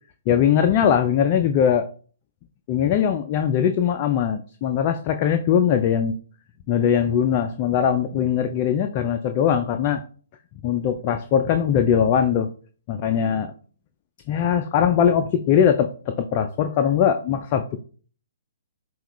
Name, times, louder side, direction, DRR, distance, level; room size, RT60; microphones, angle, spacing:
voice 1, 0.3-1.9 2.7-6.1 6.7-10.0 10.6-12.5 12.9-13.5 14.3-17.8, left 8 dB, 35° left, 6 dB, 0.4 m, -21 dB
5.6 x 2.3 x 3.1 m, 0.41 s
hypercardioid pair, 130°, 0 cm